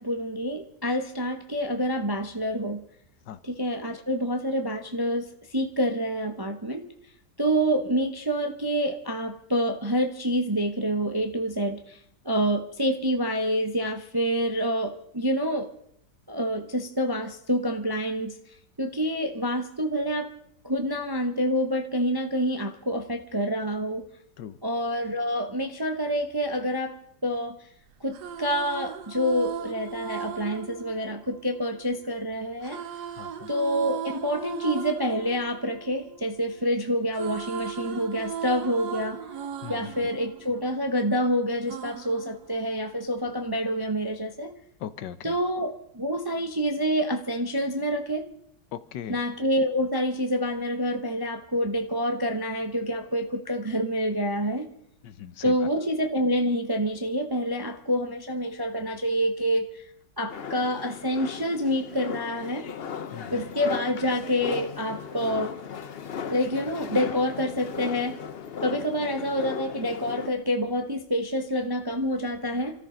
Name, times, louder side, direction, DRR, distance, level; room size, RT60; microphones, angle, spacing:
voice 1, 0.0-2.8 3.4-6.9 7.4-12.0 12.2-15.7 16.3-18.3 18.8-20.3 20.6-24.0 24.6-27.0 27.2-27.6 28.0-32.8 33.5-39.2 39.7-44.5 45.2-48.2 49.1-54.7 55.4-59.8 60.2-62.6 63.3-65.5 66.3-68.2 68.6-72.7, equal, 25° right, 5 dB, 0.5 m, -27 dB
sound 1, 27.9-32.0 32.6-36.7 36.9-41.2 41.7-43.1, right 8 dB, 65° right, 1.4 m, -37 dB
voice 2, 33.2-33.5 39.6-40.1 44.8-45.4 48.7-49.2 55.0-55.7 63.1-63.5, left 9 dB, 70° left, 14 dB, 1.4 m, -39 dB
sound 2, 60.3-70.3, left 7 dB, 55° left, 0.6 m, -37 dB
26.5 x 14.0 x 3.9 m, 0.69 s
omnidirectional pair, 2.0 m